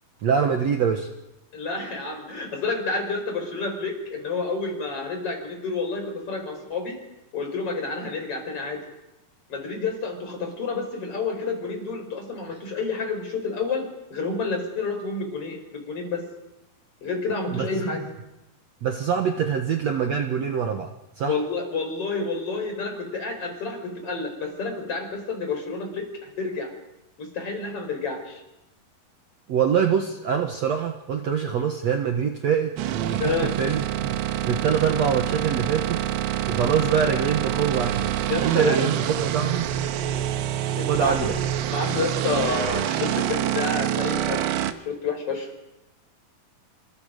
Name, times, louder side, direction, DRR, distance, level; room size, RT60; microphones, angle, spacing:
voice 1, 0.2-1.1 17.5-17.7 18.8-20.9 21.2-21.4 29.5-36.1 36.5-38.1 38.4-39.7 40.9-41.3, right 7 dB, 60° right, 4 dB, 2.1 m, -24 dB
voice 2, 1.5-7.0 7.3-8.8 9.5-13.9 14.1-16.3 17.0-18.1 21.3-26.7 27.2-28.4 33.2-33.5 38.3-38.9 40.8-41.3 41.7-45.5, left 4 dB, 40° left, 4 dB, 5.5 m, -29 dB
sound 1, 32.8-44.7, right 11 dB, 90° right, 2.9 m, -26 dB
27.5 x 26.0 x 5.2 m, 0.93 s
omnidirectional pair, 4.3 m